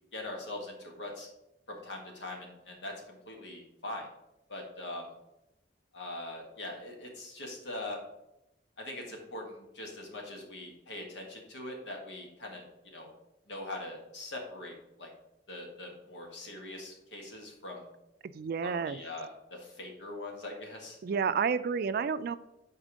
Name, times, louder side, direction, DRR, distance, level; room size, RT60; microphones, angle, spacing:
voice 1, 0.1-1.3 1.7-4.1 4.5-5.1 5.9-8.0 8.8-13.1 13.5-15.1 15.5-17.9 18.6-21.0, left 2 dB, 90° left, 0 dB, 1.7 m, -42 dB
voice 2, 18.2-19.0 21.0-22.4, right 6 dB, 55° right, 14 dB, 0.3 m, -30 dB
5.0 x 4.5 x 6.2 m, 0.88 s
head